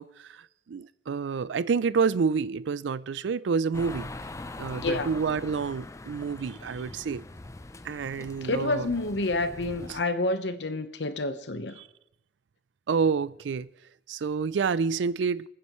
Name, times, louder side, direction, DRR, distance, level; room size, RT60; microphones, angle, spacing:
voice 1, 0.0-4.1 4.6-7.2 7.8-8.9 9.9-10.0 11.8-11.9 12.9-13.7 14.1-15.5, right 5 dB, 85° right, 0.4 m, -28 dB
sound 1, 3.7-10.0, left 2 dB, 15° left, 0.5 m, -42 dB
voice 2, 4.7-5.1 8.4-11.7, left 2 dB, 70° left, 1.0 m, -29 dB
29.0 x 9.7 x 3.1 m
head